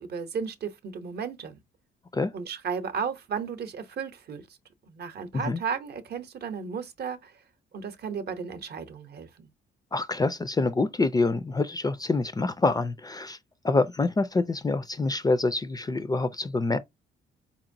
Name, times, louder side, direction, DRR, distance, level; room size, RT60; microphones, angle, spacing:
voice 1, 0.0-1.6 2.3-4.5 4.9-7.3 7.7-9.5, right 6 dB, 55° right, 0.7 m, -34 dB
voice 2, 9.9-13.4 13.6-16.8, left 3 dB, 20° left, 0.4 m, -26 dB
4.4 x 2.9 x 2.6 m
cardioid pair, 90°, 20 cm